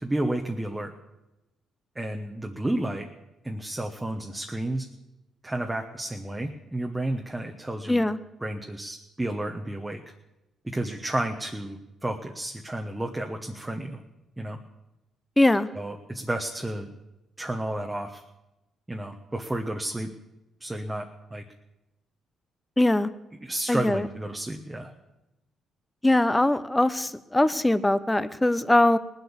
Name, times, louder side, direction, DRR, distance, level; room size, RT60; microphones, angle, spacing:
voice 1, 0.0-0.9 1.9-3.1 3.4-4.8 5.4-8.1 8.4-10.0 10.6-14.0 14.4-14.6 15.7-16.9 17.4-18.2 18.9-20.1 20.6-21.4 23.4-24.9, right 1 dB, 10° right, 3 dB, 1.1 m, -31 dB
voice 2, 7.9-8.2 15.4-15.7 22.8-23.1 23.7-24.1 26.0-29.0, left 1 dB, 10° left, 15 dB, 0.7 m, -21 dB
19.0 x 8.0 x 7.2 m, 0.96 s
cardioid pair, 90°, 0 cm